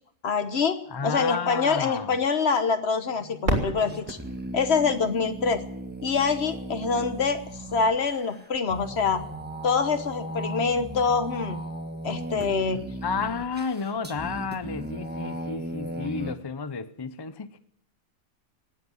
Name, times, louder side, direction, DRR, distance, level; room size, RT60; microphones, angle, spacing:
voice 1, 0.2-0.8 1.0-4.2 4.5-5.6 6.0-7.4 7.7-9.2 9.6-11.6 12.0-12.8, left 5 dB, 50° left, 1.3 m, -25 dB
voice 2, 0.9-2.2 13.0-17.6, left 5 dB, 30° left, 0.4 m, -32 dB
sound 1, 3.1-16.3, right 1 dB, 10° right, 1.2 m, -37 dB
Fireworks, 3.4-6.2 6.9-7.0 7.7-8.1 10.0-10.1, right 1 dB, 65° right, 3.6 m, -32 dB
18.5 x 8.1 x 9.4 m
omnidirectional pair, 1.4 m